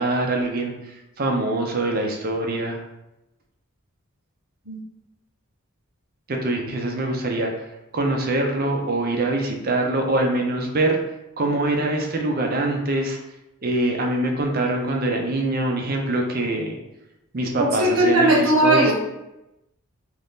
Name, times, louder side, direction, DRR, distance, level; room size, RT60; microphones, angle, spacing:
voice 1, 0.0-2.8 6.3-7.5 7.9-11.0 11.4-13.2 13.6-16.8 17.3-18.9, right 2 dB, 45° right, 2 dB, 0.6 m, -24 dB
voice 2, 17.6-18.9, right 1 dB, 85° right, -3 dB, 1.1 m, -18 dB
2.9 x 2.7 x 3.5 m, 0.91 s
head